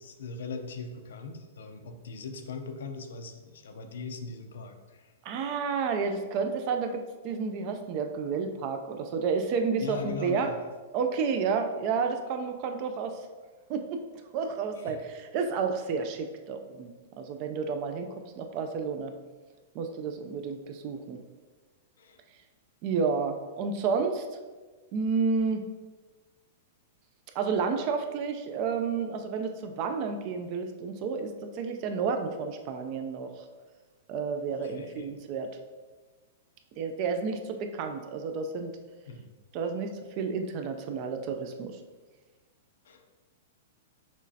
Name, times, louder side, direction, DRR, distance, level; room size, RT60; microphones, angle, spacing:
voice 1, 0.0-5.1 9.8-10.6 14.8-15.0 22.0-22.2 34.5-35.1 39.1-39.3 42.8-43.1, left 4 dB, 85° left, 6 dB, 0.6 m, -40 dB
voice 2, 5.2-10.5 10.9-13.2 13.7-14.0 14.3-16.9 17.2-18.1 18.4-19.1 19.7-21.2 22.8-24.2 24.9-25.6 27.4-33.3 34.1-35.5 36.8-38.7 39.5-41.8, right 5 dB, 35° right, 5 dB, 0.4 m, -31 dB
6.2 x 3.0 x 2.7 m, 1.3 s
supercardioid pair, 170°, 0 cm